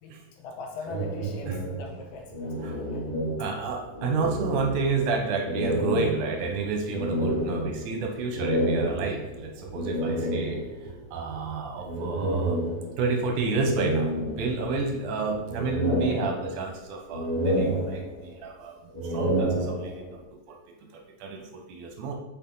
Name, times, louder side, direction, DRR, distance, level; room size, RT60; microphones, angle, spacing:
voice 1, 0.0-3.1, left 4 dB, 75° left, 1 dB, 2.2 m, -42 dB
sound 1, 0.8-3.7 3.9-5.0 5.4-10.9 11.8-13.1 13.6-14.9 15.3-16.8 17.1-18.4 18.8-20.2, right 1 dB, 20° right, 1.1 m, -29 dB
voice 2, 3.4-10.6 11.1-12.6 13.0-18.8 19.0-20.2 20.5-20.6 20.9-22.1, right 4 dB, 75° right, 2 dB, 2.4 m, -30 dB
sound 2, 3.6-16.1, right 2 dB, 55° right, 2.5 m, -47 dB
6.5 x 5.6 x 3.9 m, 0.95 s
omnidirectional pair, 3.7 m